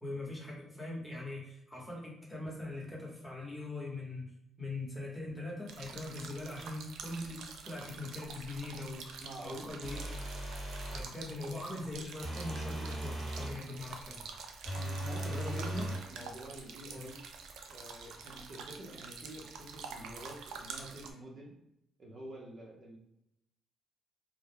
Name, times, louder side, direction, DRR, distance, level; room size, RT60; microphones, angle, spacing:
voice 1, 0.0-4.2 4.6-10.1 10.9-14.3 15.2-15.9 17.0-17.1, left 2 dB, 15° left, -4 dB, 1.0 m, -41 dB
sound 1, 5.7-21.1, right 5 dB, 80° right, 0.4 m, -47 dB
voice 2, 9.2-9.7 14.7-17.2 17.7-21.5 22.0-23.0, right 1 dB, 50° right, -2 dB, 0.7 m, -47 dB
sound 2, 9.8-11.1 12.2-13.6 14.6-16.1, right 1 dB, 10° right, 1.1 m, -38 dB
2.2 x 2.1 x 3.3 m, 0.81 s
cardioid pair, 90°, 0 cm